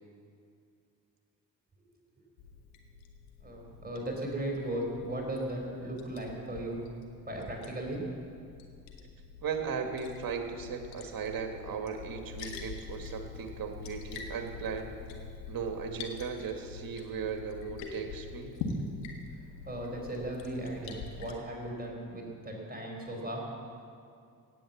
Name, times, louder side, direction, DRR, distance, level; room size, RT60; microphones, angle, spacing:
Liquid, 2.4-21.3, left 4 dB, 70° left, 1.7 m, -45 dB
voice 1, 3.4-6.8 7.3-8.0 19.6-23.5, right 1 dB, 20° right, -1 dB, 4.5 m, -37 dB
voice 2, 9.4-14.9 15.5-18.5, right 6 dB, 45° right, 4 dB, 2.0 m, -37 dB
17.5 x 8.9 x 7.3 m, 2.4 s
hypercardioid pair, 45°, 47 cm